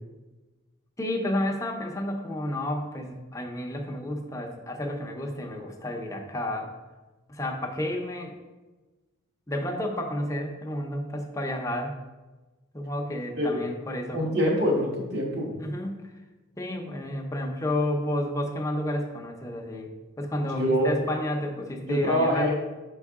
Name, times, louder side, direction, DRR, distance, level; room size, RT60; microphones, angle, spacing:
voice 1, 1.0-6.7 7.3-8.4 9.5-12.0 12.7-14.2 15.6-16.0 16.6-19.9 20.2-22.6, left 1 dB, 15° left, 1 dB, 0.6 m, -31 dB
voice 2, 14.1-15.5 20.4-20.9 21.8-22.5, equal, 55° right, -2 dB, 1.4 m, -25 dB
6.2 x 4.6 x 3.6 m, 1.2 s
head